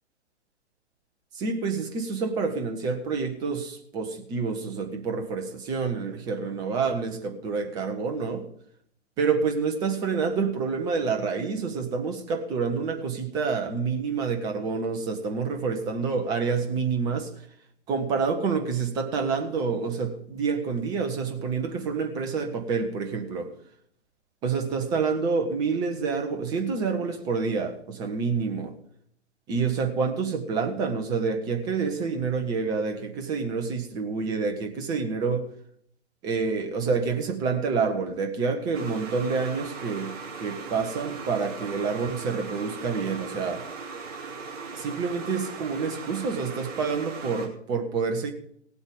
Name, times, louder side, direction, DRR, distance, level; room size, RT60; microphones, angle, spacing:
voice 1, 1.3-8.5 9.2-17.3 17.9-23.5 24.4-28.7 29.5-35.5 36.2-43.7 44.7-48.3, right 5 dB, 10° right, 0.9 m, -28 dB
sound 1, 38.7-47.5, right 4 dB, 30° right, 2.8 m, -39 dB
17.0 x 8.2 x 5.1 m
figure-of-eight pair, 130°, 36 cm